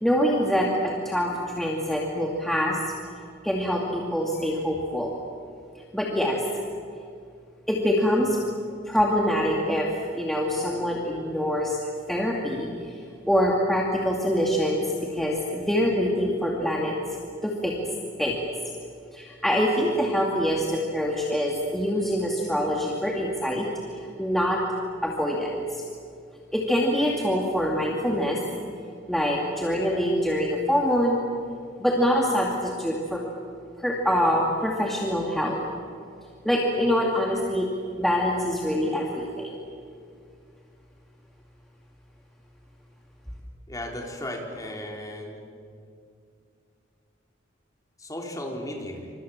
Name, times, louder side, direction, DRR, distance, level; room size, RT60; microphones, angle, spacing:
voice 1, 0.0-1.3 1.6-2.8 3.4-5.1 5.9-6.6 7.7-8.4 8.9-9.9 10.1-11.8 12.1-12.7 13.3-16.9 17.4-17.7 18.2-18.4 19.1-23.7 24.2-24.6 25.0-25.8 26.5-28.4 29.1-31.2 31.8-33.2 33.8-35.6 36.4-37.7 38.0-39.6, equal, ahead, -3 dB, 2.4 m, -24 dB
voice 2, 43.7-45.4 48.0-49.1, left 1 dB, 20° left, 0 dB, 4.1 m, -35 dB
28.5 x 26.0 x 7.3 m, 2.4 s
head